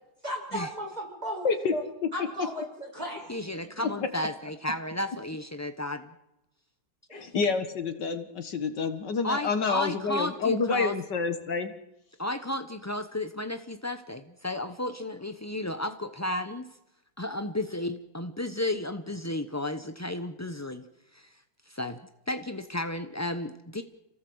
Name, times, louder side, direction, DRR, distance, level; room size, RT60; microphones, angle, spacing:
voice 1, 0.2-1.8 2.1-3.3 7.1-7.3, equal, 20° right, 1 dB, 6.4 m, -35 dB
voice 2, 3.3-6.1 9.2-10.9 12.2-16.8 17.2-20.8 21.1-22.0 22.3-23.8, left 1 dB, 20° left, 9 dB, 0.4 m, -33 dB
voice 3, 7.1-11.7, left 5 dB, 65° left, 9 dB, 2.1 m, -28 dB
28.0 x 18.0 x 8.0 m, 0.90 s
omnidirectional pair, 2.1 m